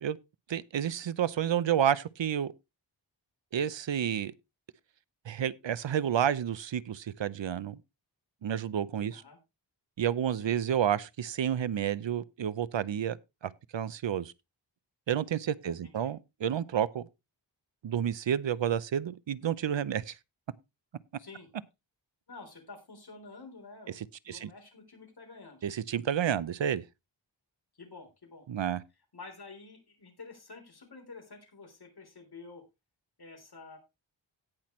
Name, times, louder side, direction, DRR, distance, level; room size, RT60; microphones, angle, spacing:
voice 1, 0.5-2.5 3.5-4.3 5.3-7.8 8.4-9.2 10.0-13.2 13.4-14.3 15.1-17.1 17.8-20.1 24.3-24.5 25.6-26.8 28.5-28.8, right 9 dB, 75° right, 0.7 m, -30 dB
voice 2, 21.2-21.5 22.3-25.6 27.7-28.5 29.1-32.6 33.2-33.8, left 3 dB, 55° left, 3.7 m, -49 dB
17.5 x 6.0 x 3.1 m
wide cardioid pair, 115°, 46 cm